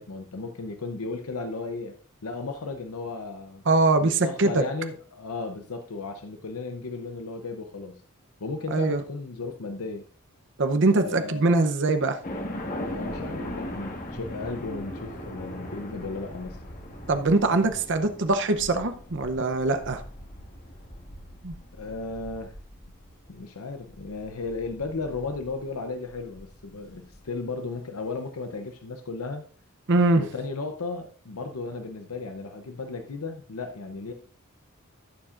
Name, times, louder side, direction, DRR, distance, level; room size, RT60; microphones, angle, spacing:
voice 1, 0.0-1.9 2.2-3.6 4.0-8.0 8.4-10.0 10.9-11.5 12.9-16.6 21.7-22.5 23.3-29.4 30.2-34.1, left 3 dB, 85° left, 6 dB, 0.8 m, -35 dB
voice 2, 3.7-4.6 8.7-9.0 10.6-12.2 17.1-20.0 21.4-21.5 29.9-30.2, right 2 dB, 55° right, 8 dB, 0.8 m, -22 dB
sound 1, 12.2-27.4, left 1 dB, 40° left, 1.5 m, -39 dB
15.5 x 7.2 x 2.5 m, 0.42 s
head